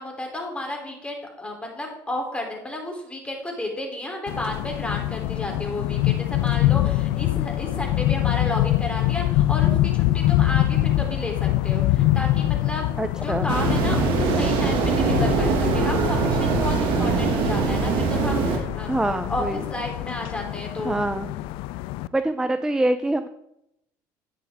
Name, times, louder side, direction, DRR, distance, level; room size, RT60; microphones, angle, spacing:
voice 1, 0.0-13.0 13.2-18.9 19.3-21.0, left 1 dB, 10° left, 1 dB, 3.2 m, -32 dB
sound 1, 4.3-22.1, left 15 dB, 70° left, 0.4 m, -24 dB
voice 2, 13.0-13.5 18.9-19.6 20.8-21.3 22.1-23.3, right 1 dB, 5° right, 11 dB, 0.5 m, -25 dB
sound 2, 13.5-18.6, right 4 dB, 65° right, 2.0 m, -22 dB
9.8 x 9.0 x 3.5 m, 0.82 s
supercardioid pair, 80°, 9 cm